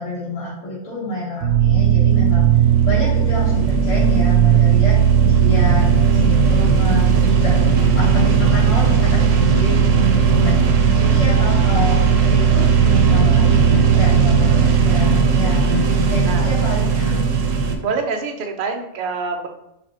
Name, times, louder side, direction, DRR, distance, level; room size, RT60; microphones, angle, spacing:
voice 1, 0.0-5.0 5.3-17.2, left 1 dB, 70° left, -11 dB, 1.8 m, -28 dB
sound 1, 1.4-17.7, right 6 dB, 85° right, 1.0 m, -15 dB
voice 2, 17.8-19.5, right 4 dB, 55° right, 3 dB, 0.6 m, -26 dB
5.0 x 3.5 x 2.9 m, 0.83 s
omnidirectional pair, 1.3 m